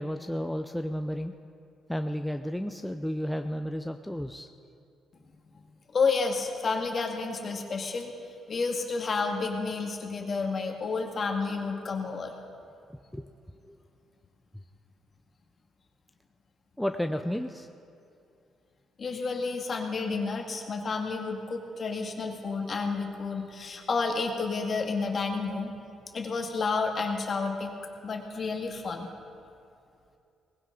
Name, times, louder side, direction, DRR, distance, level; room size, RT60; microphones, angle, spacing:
voice 1, 0.0-1.3 1.9-4.5 13.1-13.2 13.7-13.8 16.8-17.7, equal, 5° left, 6 dB, 0.5 m, -32 dB
voice 2, 5.1-5.6 5.9-8.1 8.5-12.3 19.0-25.7 26.1-27.7 28.0-29.1, left 4 dB, 45° left, 3 dB, 1.9 m, -30 dB
19.5 x 16.0 x 3.9 m, 2.6 s
cardioid pair, 90°, 0 cm